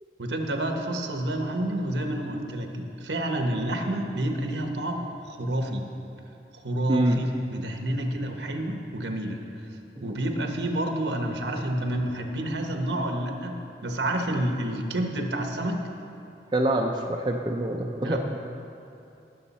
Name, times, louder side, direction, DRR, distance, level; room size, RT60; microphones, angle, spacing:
voice 1, 0.2-5.8 6.6-9.4 10.0-15.9 18.0-18.2, right 1 dB, 80° right, 3 dB, 1.1 m, -29 dB
voice 2, 6.9-7.2 10.0-10.2 16.5-18.2, right 1 dB, 25° right, 1 dB, 0.5 m, -25 dB
19.5 x 6.6 x 4.2 m, 2.7 s
head